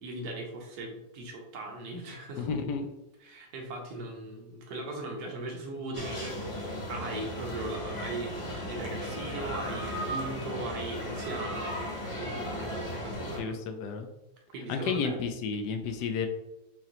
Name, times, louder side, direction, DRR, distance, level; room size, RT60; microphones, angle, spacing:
voice 1, 0.0-2.9 3.2-11.8 12.1-13.6 14.5-15.2, right 2 dB, 65° right, 1 dB, 1.4 m, -39 dB
voice 2, 2.4-2.9 13.4-14.1 14.7-16.3, left 5 dB, 75° left, 6 dB, 1.2 m, -32 dB
sound 1, 5.9-13.4, equal, 25° left, 0.8 m, -36 dB
5.6 x 3.0 x 3.0 m, 0.93 s
omnidirectional pair, 1.8 m